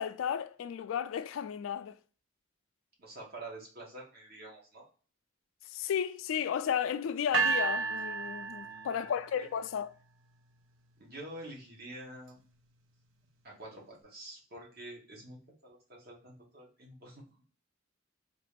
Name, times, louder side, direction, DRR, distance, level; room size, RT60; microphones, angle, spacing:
voice 1, 0.0-2.0 5.7-9.9, left 8 dB, 85° left, 0.3 m, -33 dB
voice 2, 3.0-4.9 8.6-9.5 11.0-12.4 13.4-17.2, right 1 dB, 50° right, 1.2 m, -48 dB
sound 1, 7.3-9.4, right 4 dB, 75° right, 0.5 m, -32 dB
3.9 x 2.4 x 3.3 m
head